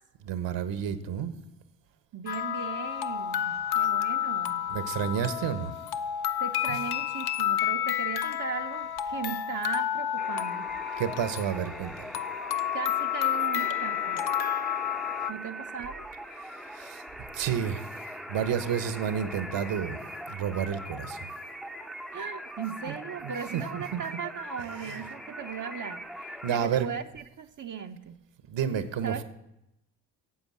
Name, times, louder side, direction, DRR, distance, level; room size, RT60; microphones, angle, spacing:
voice 1, 0.2-1.3 4.7-5.7 6.7-6.8 11.0-12.1 16.4-17.0 17.3-17.8 18.3-20.0 20.3-21.3 22.9-23.0 23.2-24.0 24.6-25.0 26.4-26.9 28.5-29.2, right 8 dB, 60° right, 10 dB, 1.3 m, -31 dB
voice 2, 2.1-4.7 6.4-10.7 12.7-14.2 15.3-16.0 22.1-28.2 29.0-29.2, right 7 dB, 40° right, 4 dB, 0.8 m, -38 dB
Anniversary Vintage Music Box (Perfect Loop), 2.3-15.3, left 10 dB, 50° left, 0.7 m, -30 dB
sound 1, 10.2-26.7, equal, ahead, 0.7 m, -41 dB
10.0 x 7.9 x 7.4 m, 0.88 s
hypercardioid pair, 55°, 49 cm